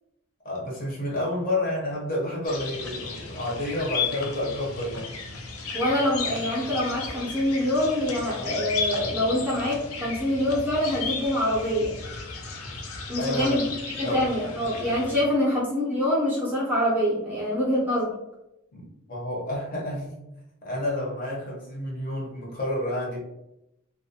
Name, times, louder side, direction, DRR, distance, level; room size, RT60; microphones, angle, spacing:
voice 1, 0.4-5.1 13.2-13.6 14.0-14.2 18.7-20.2 20.6-23.2, left 1 dB, 40° left, -3 dB, 0.7 m, -30 dB
sound 1, 2.4-15.2, left 4 dB, 80° left, 0.5 m, -34 dB
voice 2, 5.7-11.9 13.1-18.1, left 1 dB, 10° right, -6 dB, 0.5 m, -25 dB
2.3 x 2.1 x 2.6 m, 0.88 s
head